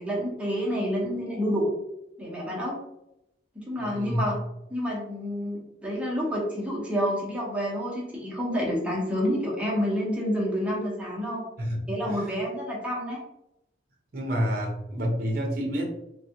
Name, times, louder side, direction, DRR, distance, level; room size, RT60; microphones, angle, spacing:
voice 1, 0.0-1.7 2.2-2.8 3.5-4.4 4.7-11.4 11.9-13.2, equal, 5° right, -4 dB, 0.8 m, -28 dB
voice 2, 3.8-4.2 11.6-12.3 14.1-15.9, equal, 50° right, 0 dB, 0.7 m, -29 dB
3.3 x 2.3 x 2.7 m, 0.85 s
head